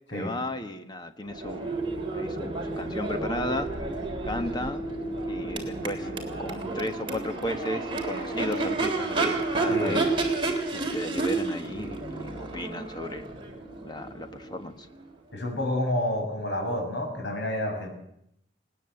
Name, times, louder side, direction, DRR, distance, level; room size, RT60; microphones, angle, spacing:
voice 1, 0.1-4.0 4.2-4.8 5.3-10.1 10.7-13.3 13.8-14.9, left 1 dB, 25° left, 8 dB, 1.4 m, -35 dB
Crowd / Race car auto racing / Accelerating revving vroom, 1.3-15.1, right 3 dB, 25° right, 3.3 m, -31 dB
voice 2, 9.7-10.1 15.3-17.9, left 1 dB, 70° left, 1 dB, 7.0 m, -29 dB
20.0 x 19.0 x 7.9 m, 0.76 s
head